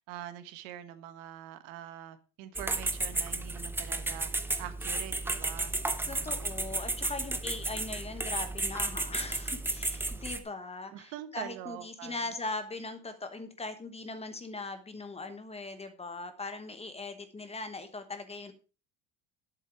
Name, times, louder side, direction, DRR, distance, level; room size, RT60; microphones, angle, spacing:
voice 1, 0.0-4.3 4.6-5.7 6.0-6.3 10.9-12.3, right 12 dB, 85° right, 1.6 m, -44 dB
sound 1, 2.6-10.4, right 2 dB, 5° right, 0.6 m, -33 dB
voice 2, 6.1-18.5, left 3 dB, 15° left, 1.1 m, -40 dB
11.0 x 7.9 x 4.8 m
cardioid pair, 160°, 45 cm